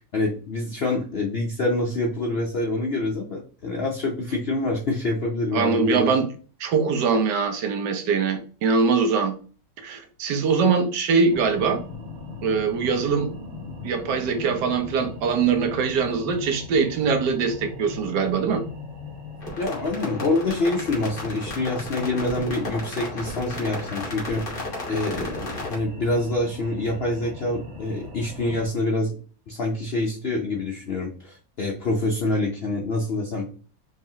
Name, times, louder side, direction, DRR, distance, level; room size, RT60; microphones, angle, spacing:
voice 1, 0.0-6.1 19.6-24.4 24.9-29.2 29.5-33.5, left 2 dB, 60° left, 0.6 m, -26 dB
voice 2, 5.5-6.3 6.6-9.3 9.8-11.8 12.4-13.3 13.8-18.6, right 5 dB, 75° right, 1.3 m, -22 dB
sound 1, 11.3-28.7, left 4 dB, 45° right, 1.4 m, -39 dB
sound 2, 19.4-25.8, left 2 dB, 35° left, 1.5 m, -34 dB
4.8 x 3.3 x 2.8 m
omnidirectional pair, 1.9 m